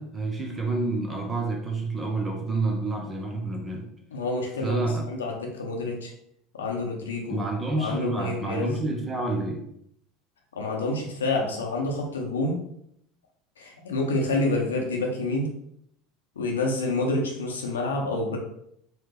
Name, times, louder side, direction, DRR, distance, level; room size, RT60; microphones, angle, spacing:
voice 1, 0.0-3.9 4.6-5.1 7.3-9.6, right 2 dB, 20° right, 2 dB, 0.9 m, -28 dB
voice 2, 4.1-6.1 6.5-7.4 7.8-8.7 10.6-12.6 13.6-15.5 16.4-18.4, left 2 dB, 80° left, 1 dB, 0.8 m, -28 dB
4.4 x 2.2 x 3.3 m, 0.72 s
figure-of-eight pair, 75°, 0 cm